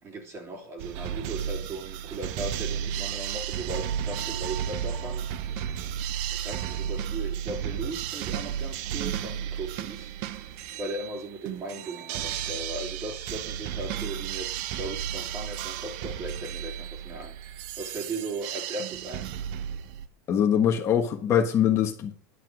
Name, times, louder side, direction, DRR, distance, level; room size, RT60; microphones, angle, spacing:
voice 1, 0.0-5.3 6.3-10.1 10.8-19.3, right 2 dB, 30° right, 3.3 m, -37 dB
sound 1, 0.8-20.1, right 9 dB, 60° right, 0.8 m, -33 dB
voice 2, 20.3-22.1, left 9 dB, 30° left, 1.4 m, -23 dB
11.0 x 5.6 x 6.3 m
supercardioid pair, 150°, 9 cm